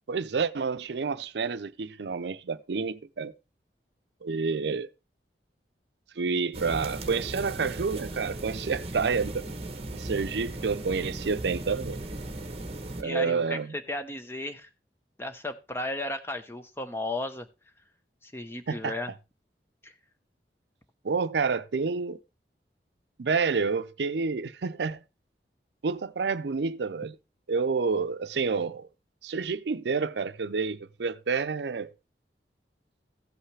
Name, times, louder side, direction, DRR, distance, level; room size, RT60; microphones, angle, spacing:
voice 1, 0.1-3.3 4.2-4.9 6.2-9.4 9.9-12.0 13.0-13.7 18.7-19.0 21.0-22.2 23.2-25.0 25.8-27.1 27.5-28.9 29.2-31.9, right 5 dB, 80° right, 0.5 m, -29 dB
sound 1, 6.5-13.0, right 2 dB, 35° right, 1.0 m, -37 dB
voice 2, 13.0-14.7 15.2-17.5 18.2-19.1 19.8-19.9, left 1 dB, 15° left, 0.7 m, -34 dB
16.0 x 5.7 x 3.2 m
head